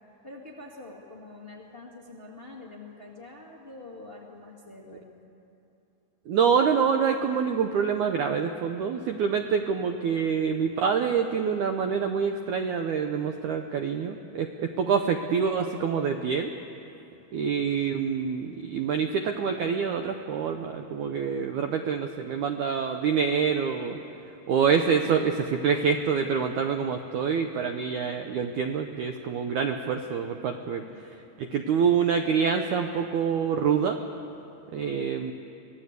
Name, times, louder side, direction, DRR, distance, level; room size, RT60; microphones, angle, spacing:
voice 1, 0.2-5.1 14.6-14.9 16.1-16.5 24.8-25.3 30.8-31.1 34.8-35.2, left 3 dB, 25° left, -2 dB, 1.3 m, -46 dB
voice 2, 6.3-16.5 17.3-24.0 24.5-30.8 31.4-34.0 34.7-35.3, right 6 dB, 85° right, 6 dB, 1.7 m, -26 dB
24.5 x 18.0 x 8.2 m, 2.8 s
omnidirectional pair, 4.6 m